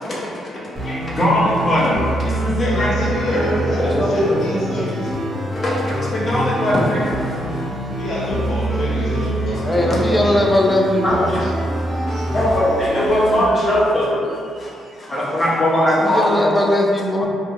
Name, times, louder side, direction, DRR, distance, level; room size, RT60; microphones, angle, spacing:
voice 1, 0.0-3.5 3.8-5.1 5.5-7.7 9.5-9.6 11.0-11.5 11.9-16.5, left 1 dB, 35° left, -6 dB, 0.7 m, -21 dB
sound 1, 0.8-13.5, right 1 dB, 25° right, 0.7 m, -25 dB
voice 2, 2.5-5.1 8.0-10.4 11.4-11.5 12.0-12.3 13.6-13.7, left 1 dB, 65° left, -7 dB, 0.8 m, -28 dB
voice 3, 9.6-11.3 16.0-17.3, left 1 dB, 10° left, -1 dB, 0.4 m, -18 dB
2.6 x 2.3 x 2.8 m, 2.4 s
cardioid pair, 90°, 0 cm